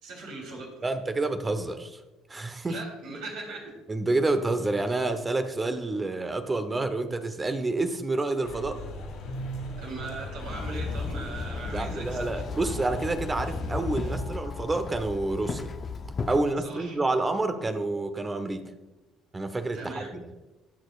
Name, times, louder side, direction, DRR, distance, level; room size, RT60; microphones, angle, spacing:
voice 1, 0.0-0.7 2.7-3.8 9.8-12.5 16.6-17.0 19.7-20.1, right 3 dB, 70° right, -2 dB, 3.5 m, -39 dB
voice 2, 0.8-2.0 2.3-2.8 3.9-8.8 11.7-15.7 16.3-18.7 19.3-20.3, right 2 dB, 25° right, 8 dB, 1.0 m, -28 dB
sound 1, 8.4-14.2, left 1 dB, 70° left, 2.7 m, -38 dB
Walk footsteps / Chatter / Hiss, 10.4-16.4, left 4 dB, 40° left, 0.7 m, -35 dB
17.0 x 6.4 x 2.5 m, 1.1 s
hypercardioid pair, 60°, 0 cm